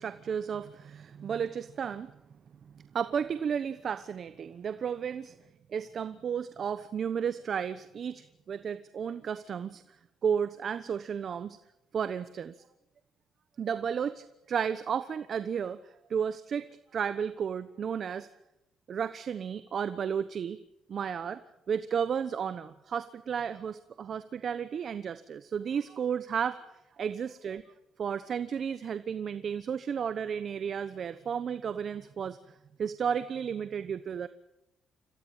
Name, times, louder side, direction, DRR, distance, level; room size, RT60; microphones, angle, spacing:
voice 1, 0.0-2.1 2.6-5.4 5.7-10.0 10.2-11.6 11.9-12.6 13.6-18.3 18.9-20.6 20.9-27.6 28.0-34.3, right 7 dB, 55° right, 13 dB, 1.0 m, -33 dB
27.0 x 16.0 x 9.0 m, 0.88 s
cardioid pair, 90°, 0 cm